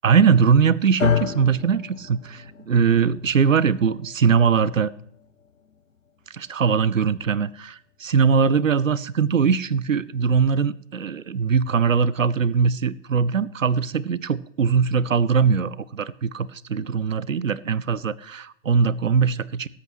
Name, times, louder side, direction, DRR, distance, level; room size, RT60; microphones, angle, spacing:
voice 1, 0.0-4.9 6.3-19.7, right 6 dB, 85° right, 21 dB, 0.6 m, -21 dB
sound 1, 1.0-9.2, left 6 dB, 80° left, 0.9 m, -32 dB
18.0 x 8.4 x 3.1 m, 0.67 s
figure-of-eight pair, 115°, 38 cm